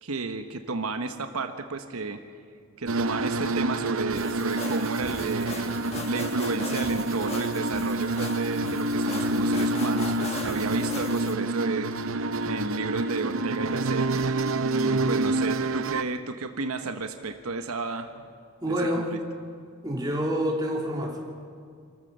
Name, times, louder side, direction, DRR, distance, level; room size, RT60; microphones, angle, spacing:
voice 1, 0.0-2.2 2.8-5.8 6.1-11.9 12.4-14.1 14.7-18.3 18.7-19.0, right 3 dB, 80° right, 7 dB, 1.1 m, -32 dB
sound 1, 2.9-16.0, right 2 dB, 65° right, 0.7 m, -28 dB
sound 2, 4.1-11.3, left 3 dB, 30° left, 1.2 m, -39 dB
voice 2, 14.8-15.3 18.6-19.1 19.8-21.2, equal, 20° right, -1 dB, 3.0 m, -28 dB
27.0 x 14.0 x 6.8 m, 2.3 s
head